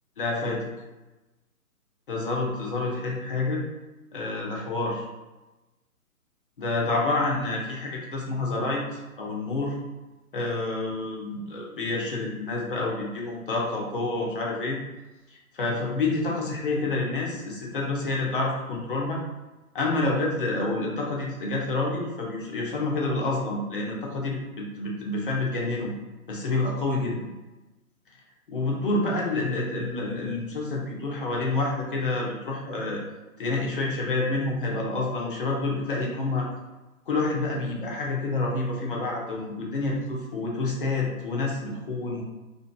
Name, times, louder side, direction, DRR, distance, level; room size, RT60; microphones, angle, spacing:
voice 1, 0.2-0.7 2.1-3.6 4.1-5.0 6.6-9.8 10.3-14.8 15.3-19.2 19.7-25.9 26.3-27.2 28.5-33.0 33.4-36.5 37.1-42.2, left 2 dB, 40° left, -2 dB, 0.6 m, -28 dB
2.6 x 2.4 x 2.2 m, 1.1 s
figure-of-eight pair, 135°, 44 cm